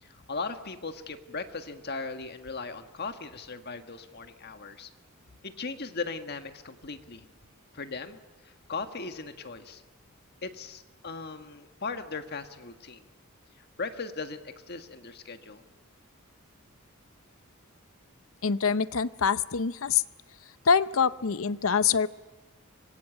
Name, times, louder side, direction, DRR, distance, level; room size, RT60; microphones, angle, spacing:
voice 1, 0.0-4.9 5.4-7.3 7.7-9.8 10.4-13.0 13.8-15.6, left 4 dB, 50° left, 7 dB, 1.6 m, -38 dB
voice 2, 18.4-20.0 20.7-22.1, left 6 dB, 70° left, 15 dB, 0.7 m, -25 dB
25.0 x 21.5 x 9.0 m, 1.2 s
head